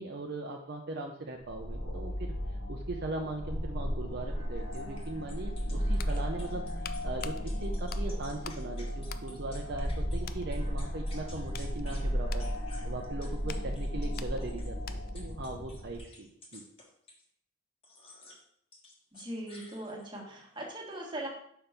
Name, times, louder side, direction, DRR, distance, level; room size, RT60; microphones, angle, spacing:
voice 1, 0.0-2.3 2.7-12.5 12.8-16.6, right 2 dB, 50° right, 1 dB, 0.6 m, -39 dB
sound 1, 1.4-16.0, equal, 85° left, 1.4 m, -35 dB
sound 2, 4.7-10.2 10.5-12.1 12.4-17.3 17.8-18.4 18.7-20.2, left 2 dB, 30° left, 1.2 m, -54 dB
sound 3, 5.8-8.7 9.0-9.9 10.2-10.5 11.0-15.3 15.6-15.7, left 9 dB, 45° left, 0.4 m, -48 dB
voice 2, 19.1-21.3, right 1 dB, 20° right, -1 dB, 1.4 m, -40 dB
5.3 x 4.6 x 5.7 m, 0.68 s
head